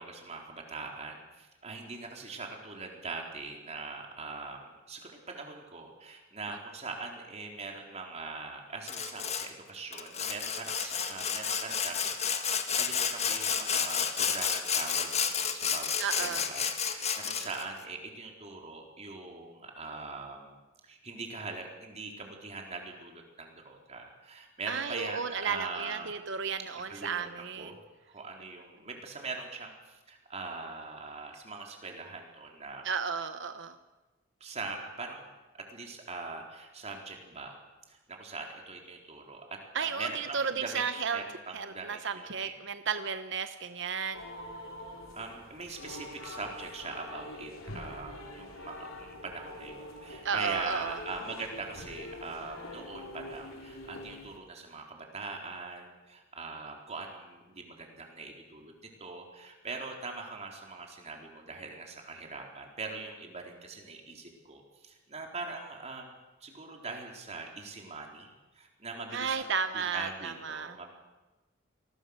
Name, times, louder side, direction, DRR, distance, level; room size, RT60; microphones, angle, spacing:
voice 1, 0.0-12.1 12.5-20.6 20.8-26.2 26.8-32.9 34.4-37.6 37.9-40.8 41.1-42.5 45.1-58.7 59.0-70.9, right 3 dB, 35° right, 1 dB, 4.0 m, -42 dB
Sawing, 8.9-9.5 9.9-17.6, left 7 dB, 30° left, 1.8 m, -31 dB
voice 2, 16.0-16.5 24.7-27.7 32.8-33.7 39.7-41.2 41.5-44.2 50.2-51.0 69.1-70.8, right 6 dB, 60° right, 9 dB, 0.9 m, -33 dB
sound 1, 44.1-54.4, left 1 dB, 85° left, 3.9 m, -45 dB
27.5 x 20.5 x 6.6 m, 1.1 s
head